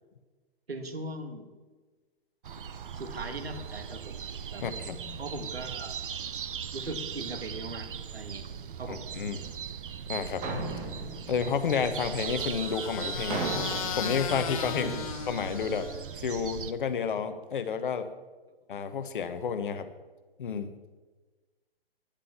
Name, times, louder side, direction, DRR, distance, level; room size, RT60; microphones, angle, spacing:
voice 1, 0.7-1.5 2.9-4.7 5.2-6.0 6.7-8.5 8.8-9.1 14.7-15.1, right 2 dB, 75° right, 7 dB, 1.8 m, -39 dB
sound 1, 2.4-16.7, right 7 dB, 55° right, 0.8 m, -39 dB
voice 2, 4.6-5.2 8.9-9.5 10.1-10.5 11.3-13.4 13.9-14.9 15.3-18.1 18.7-19.9 20.4-20.7, left 6 dB, 55° left, 11 dB, 1.2 m, -31 dB
sound 2, 10.4-12.4 13.3-15.2, right 2 dB, 30° right, 2.2 m, -37 dB
sound 3, 11.6-16.2, left 9 dB, 35° left, 0.8 m, -38 dB
10.0 x 9.0 x 7.1 m, 1.3 s
figure-of-eight pair, 125°, 31 cm